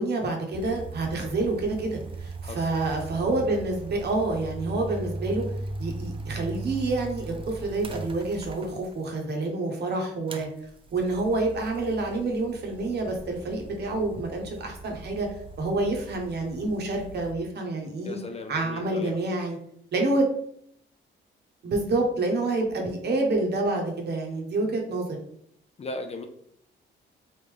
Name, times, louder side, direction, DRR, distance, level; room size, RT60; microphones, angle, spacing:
voice 1, 0.0-5.4 5.8-10.5 10.9-15.3 15.6-18.2 18.5-19.6 19.9-20.3 21.6-25.1, right 2 dB, 55° right, 2 dB, 1.0 m, -28 dB
sound 1, 0.5-9.2 10.3-17.3, right 3 dB, 25° right, 0.4 m, -39 dB
voice 2, 18.0-19.2 25.8-26.3, left 2 dB, 30° left, 6 dB, 0.4 m, -37 dB
3.2 x 2.5 x 3.5 m, 0.68 s
cardioid pair, 90°, 20 cm